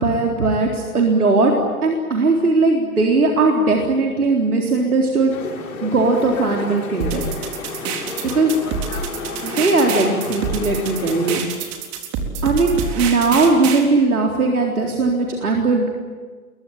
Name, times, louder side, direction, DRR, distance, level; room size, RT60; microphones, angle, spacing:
voice 1, 0.0-1.5 1.8-5.3 5.8-7.3 8.2-8.5 9.4-11.4 12.4-15.9, right 3 dB, 75° right, 0 dB, 4.0 m, -18 dB
sound 1, 5.3-11.4, left 4 dB, 70° left, 7.5 m, -31 dB
sound 2, 7.0-13.8, right 6 dB, 35° right, 4.2 m, -27 dB
28.5 x 23.0 x 9.0 m, 1.5 s
figure-of-eight pair, 110°, 44 cm